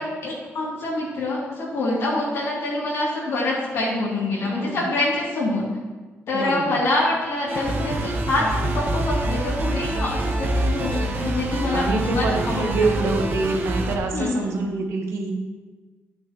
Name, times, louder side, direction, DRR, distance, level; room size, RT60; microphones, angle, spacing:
voice 1, 0.0-5.6 6.3-13.1 14.1-14.5, left 2 dB, 70° left, -7 dB, 3.1 m, -25 dB
voice 2, 4.4-4.9 6.3-6.8 11.7-15.3, right 3 dB, 75° right, 2 dB, 1.6 m, -26 dB
sound 1, 7.5-14.0, right 1 dB, 45° right, 1.3 m, -26 dB
11.5 x 8.8 x 3.1 m, 1.3 s
cardioid pair, 120°, 5 cm